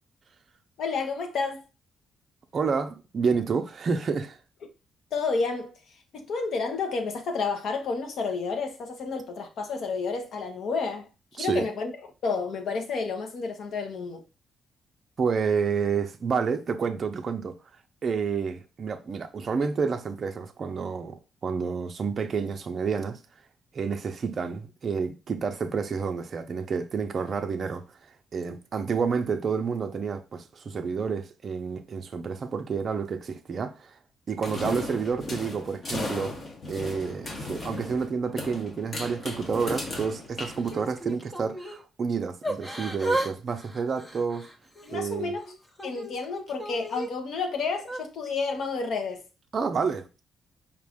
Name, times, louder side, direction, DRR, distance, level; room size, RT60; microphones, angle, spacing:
voice 1, 0.8-1.6 5.1-5.8 6.1-11.1 11.3-11.9 12.2-14.2 44.8-45.4 45.8-49.2, left 4 dB, 65° left, 0.9 m, -30 dB
voice 2, 2.5-4.4 11.4-11.7 15.2-17.5 18.0-23.2 23.7-34.0 34.3-36.3 36.7-44.5 44.9-45.3 49.5-50.2, right 5 dB, 40° right, 0.5 m, -29 dB
sound 1, 34.4-41.2, left 2 dB, 35° left, 0.9 m, -36 dB
Yell / Crying sobbing, 40.6-41.8 42.4-43.3 43.6-45.0 45.5-47.1 47.8-48.0, right 1 dB, 10° left, 0.6 m, -33 dB
5.0 x 2.5 x 3.5 m
cardioid pair, 145°, 0 cm